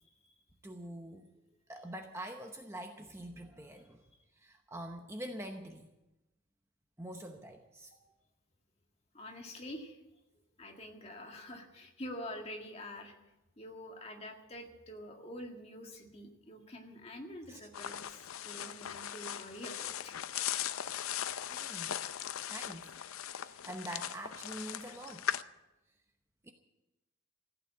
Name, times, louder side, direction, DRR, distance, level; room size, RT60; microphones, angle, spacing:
voice 1, 0.6-1.3 1.7-4.0 4.3-5.9 7.0-7.9 17.5-17.7 21.5-22.0 22.4-23.0 23.3-25.3 26.4-26.5, right 1 dB, 15° right, 4 dB, 0.8 m, -45 dB
voice 2, 9.1-10.0 10.6-13.2 13.6-20.2, left 1 dB, 30° left, 2 dB, 1.8 m, -46 dB
sound 1, 17.7-25.4, left 10 dB, 90° left, 0.5 m, -39 dB
15.0 x 9.1 x 8.6 m, 0.99 s
head